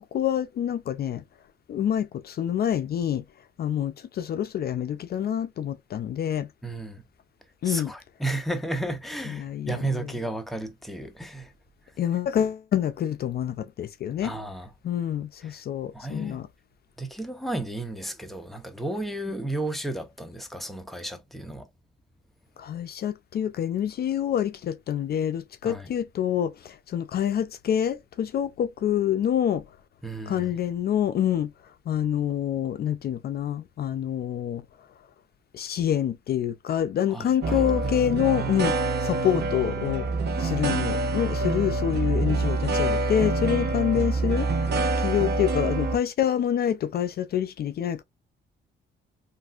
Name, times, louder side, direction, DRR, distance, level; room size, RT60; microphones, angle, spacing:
voice 1, 0.1-1.2 1.7-3.2 3.6-6.5 7.6-7.9 9.3-10.1 12.0-14.3 14.8-16.5 22.6-29.6 30.3-31.5 31.9-34.6 35.5-40.0 40.4-48.0, left 10 dB, 55° left, 0.4 m, -27 dB
voice 2, 6.6-7.0 7.6-11.5 14.2-14.7 15.4-15.6 15.9-16.4 17.0-21.7 25.6-25.9 30.0-30.5 37.1-37.6, right 1 dB, ahead, 0.8 m, -33 dB
sound 1, 37.4-46.0, right 3 dB, 55° right, 0.9 m, -26 dB
3.3 x 2.5 x 2.3 m
cardioid pair, 90°, 20 cm